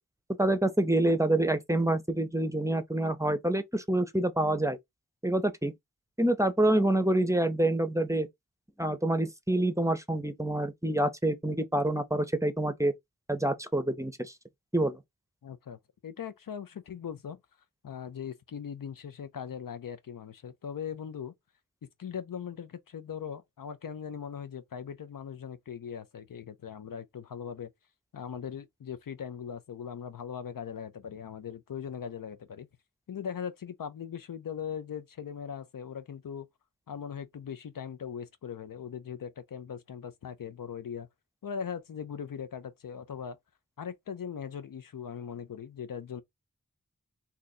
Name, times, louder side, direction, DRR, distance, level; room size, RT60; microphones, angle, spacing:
voice 1, 0.4-4.8 5.2-5.7 6.2-8.3 8.8-12.9 13.3-14.3 14.7-15.0, right 1 dB, 10° right, 0.6 m, -27 dB
voice 2, 15.4-17.4 17.8-21.3 21.8-27.7 28.1-32.7 33.1-36.5 36.9-41.1 41.4-43.4 43.8-46.2, left 7 dB, 85° left, 0.5 m, -40 dB
2.7 x 2.5 x 4.1 m
wide cardioid pair, 45°, 32 cm